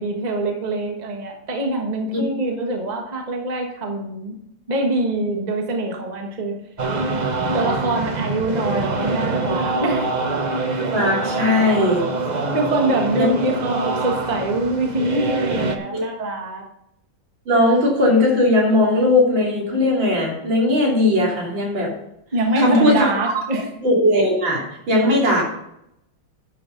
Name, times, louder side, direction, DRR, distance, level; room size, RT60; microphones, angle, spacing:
voice 1, 0.0-4.4 4.7-6.6 7.5-10.1 12.5-16.6 22.3-23.7, right 2 dB, 25° right, 1 dB, 1.3 m, -24 dB
sound 1, 6.8-15.8, right 3 dB, 50° right, 0.5 m, -24 dB
voice 2, 10.9-12.1 13.2-13.3 15.9-16.0 17.5-21.9 22.6-23.4 23.8-25.4, left 1 dB, 70° right, -3 dB, 3.8 m, -18 dB
11.0 x 6.4 x 5.2 m, 0.79 s
omnidirectional pair, 2.2 m